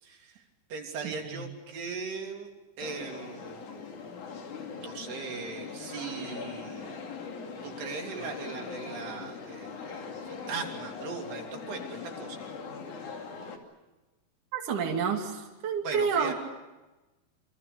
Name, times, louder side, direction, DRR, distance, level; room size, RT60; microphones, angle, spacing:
voice 1, 0.0-0.4 0.7-2.5 2.8-4.0 4.6-7.2 7.6-12.4 15.8-16.3, right 5 dB, 75° right, 2 dB, 5.2 m, -39 dB
voice 2, 1.0-1.4 14.5-16.3, right 6 dB, 50° right, 1 dB, 3.9 m, -29 dB
sound 1, 2.8-13.6, left 5 dB, 50° left, 3.7 m, -41 dB
28.0 x 26.0 x 6.8 m, 1.1 s
omnidirectional pair, 4.8 m